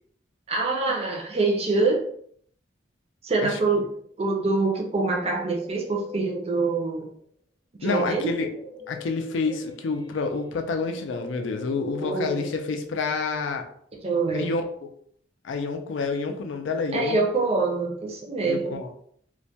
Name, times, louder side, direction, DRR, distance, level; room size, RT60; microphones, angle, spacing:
voice 1, 0.5-2.1 3.2-3.9 4.2-7.1 7.8-8.3 12.0-12.4 14.0-14.5 16.9-18.8, right 3 dB, 35° right, 0 dB, 0.5 m, -25 dB
Guitar, 4.7-7.2 8.0-13.4, left 2 dB, 20° left, 0.7 m, -43 dB
voice 2, 7.8-8.5 8.9-13.6 14.3-14.9 15.4-17.2 18.4-18.9, left 4 dB, 85° left, 5 dB, 0.4 m, -28 dB
2.2 x 2.1 x 2.7 m, 0.64 s
head